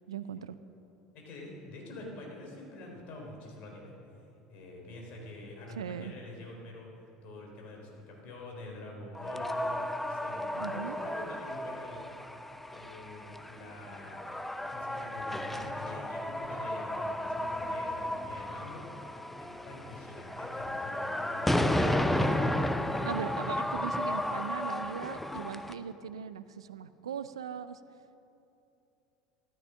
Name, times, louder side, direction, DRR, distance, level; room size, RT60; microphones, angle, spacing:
voice 1, 0.1-0.6 5.7-6.1 10.6-11.0 23.0-27.8, right 7 dB, 75° right, 13 dB, 0.5 m, -39 dB
voice 2, 1.1-4.0 4.5-6.9 7.2-9.7 10.1-12.0 12.7-14.2 14.7-19.1 19.4-21.9, left 2 dB, 50° left, 0 dB, 3.8 m, -46 dB
sound 1, 9.1-25.7, left 1 dB, 5° left, 0.7 m, -33 dB
14.0 x 13.5 x 6.3 m, 2.9 s
figure-of-eight pair, 70°, 3 cm